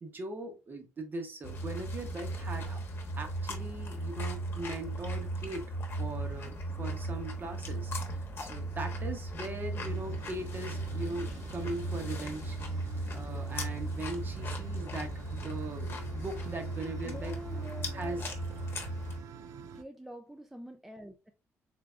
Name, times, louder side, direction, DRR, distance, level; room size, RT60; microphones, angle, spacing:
voice 1, 0.0-2.8 3.2-12.6 13.1-17.3 17.9-18.3, right 2 dB, 40° right, 1.0 m, -40 dB
sound 1, 1.4-19.2, right 1 dB, 45° left, 1.0 m, -37 dB
sound 2, 9.8-19.8, right 7 dB, 80° right, 0.4 m, -48 dB
voice 2, 17.0-18.3 19.7-21.3, equal, 5° right, 0.4 m, -46 dB
3.6 x 3.3 x 2.4 m
cardioid pair, 115°, 5 cm